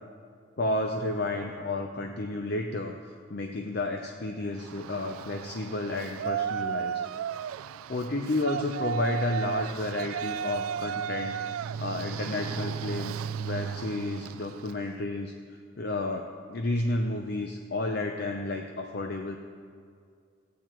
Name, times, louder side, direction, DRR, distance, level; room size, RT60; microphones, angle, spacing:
voice 1, 0.6-7.1 7.9-15.3 15.8-19.4, left 2 dB, 50° left, 4 dB, 0.6 m, -31 dB
Yell, 4.6-14.8, right 8 dB, 90° right, 0.3 m, -34 dB
17.5 x 8.4 x 4.5 m, 2.2 s
head